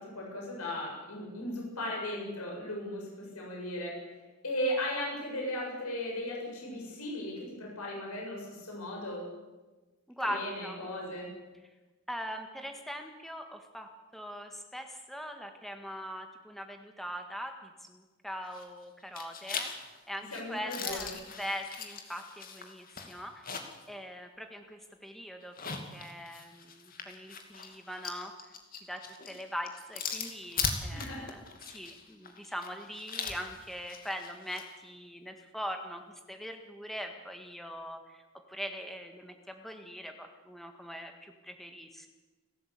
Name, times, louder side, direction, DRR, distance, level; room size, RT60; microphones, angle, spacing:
voice 1, 0.0-4.0 4.4-9.2 10.2-11.3 20.3-21.1 30.9-31.3, left 1 dB, 90° left, -2 dB, 7.7 m, -37 dB
voice 2, 10.2-10.8 12.1-21.1 21.4-23.5 23.9-25.6 25.9-28.3 28.9-31.4 31.7-36.0 36.3-38.2 38.5-42.1, equal, ahead, 4 dB, 1.8 m, -41 dB
sound 1, 18.4-18.8 19.2-23.9 24.2-24.3 25.4-34.7, left 5 dB, 40° left, 2.6 m, -40 dB
29.5 x 13.5 x 8.4 m, 1.2 s
head